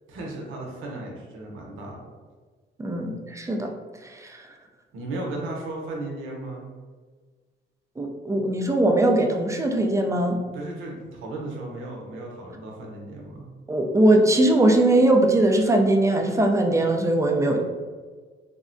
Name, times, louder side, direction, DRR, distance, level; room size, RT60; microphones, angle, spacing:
voice 1, 0.1-2.1 4.9-6.7 10.5-13.4, right 2 dB, 85° right, -1 dB, 0.7 m, -35 dB
voice 2, 2.8-3.7 4.1-4.4 8.0-10.4 13.7-17.6, right 1 dB, 15° right, 2 dB, 0.4 m, -20 dB
3.5 x 2.1 x 2.5 m, 1.5 s
cardioid pair, 90°, 20 cm